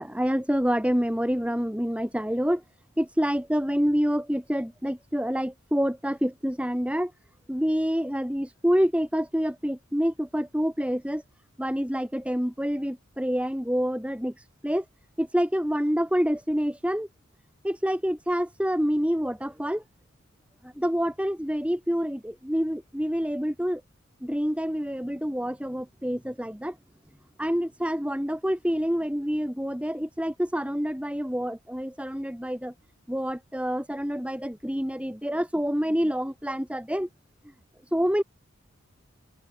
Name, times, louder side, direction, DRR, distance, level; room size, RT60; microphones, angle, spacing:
voice 1, 0.0-2.6 3.0-7.1 7.5-11.2 11.6-14.3 14.6-14.8 15.2-17.1 17.6-19.8 20.6-23.8 24.2-26.8 27.4-32.7 33.1-37.1 37.9-38.2, equal, 5° right, 2.5 m, -27 dB
head